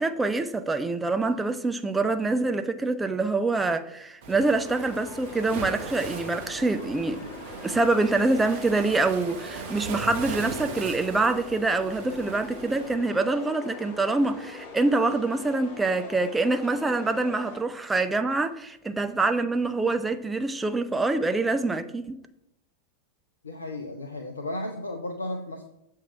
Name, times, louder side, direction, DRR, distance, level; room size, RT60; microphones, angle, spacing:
voice 1, 0.0-7.2 7.6-22.2, right 3 dB, 10° right, 0.4 m, -25 dB
Waves surf, 4.2-12.9, right 4 dB, 45° right, 0.7 m, -39 dB
sound 1, 4.6-17.6, left 4 dB, 45° left, 1.2 m, -42 dB
voice 2, 23.4-25.6, left 1 dB, 75° left, 0.5 m, -34 dB
7.2 x 2.8 x 4.7 m
figure-of-eight pair, 90°, 0 cm